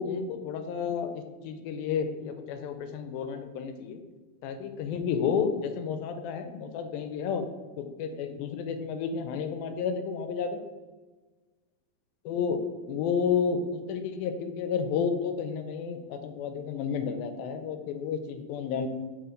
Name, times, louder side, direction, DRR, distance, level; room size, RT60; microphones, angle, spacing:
voice 1, 0.0-4.0 4.4-7.4 7.8-10.6 12.3-12.6 12.9-18.9, left 6 dB, 85° left, 8 dB, 2.4 m, -31 dB
5.0 x 4.8 x 5.0 m, 1.3 s
omnidirectional pair, 4.1 m